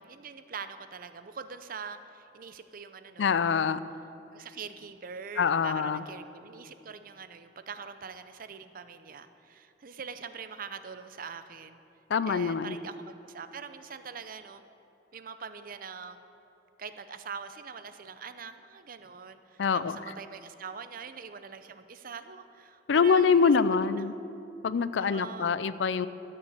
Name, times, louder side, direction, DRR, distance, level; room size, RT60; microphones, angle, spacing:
voice 1, 0.0-3.8 4.3-11.8 12.3-14.6 15.1-16.3 16.8-23.5 24.0-24.1 25.0-25.5, right 6 dB, 50° right, 10 dB, 0.6 m, -43 dB
voice 2, 3.2-3.8 5.4-6.0 12.1-12.8 19.6-20.0 22.9-24.1 24.6-26.1, left 5 dB, 80° left, 15 dB, 0.4 m, -25 dB
12.5 x 6.9 x 8.1 m, 2.9 s
head